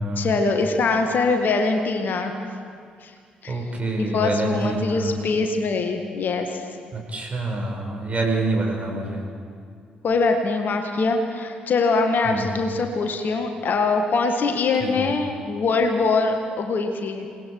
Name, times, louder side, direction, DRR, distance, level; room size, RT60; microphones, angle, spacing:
voice 1, 0.2-2.3 3.0-3.1 3.4-3.6 4.0-6.6 10.0-17.3, left 3 dB, 45° left, 4 dB, 1.7 m, -23 dB
voice 2, 3.5-5.1 7.1-9.2 12.3-12.6 14.8-15.0, right 2 dB, 35° right, 1 dB, 5.2 m, -26 dB
28.5 x 19.0 x 4.8 m, 2.2 s
figure-of-eight pair, 40°, 4 cm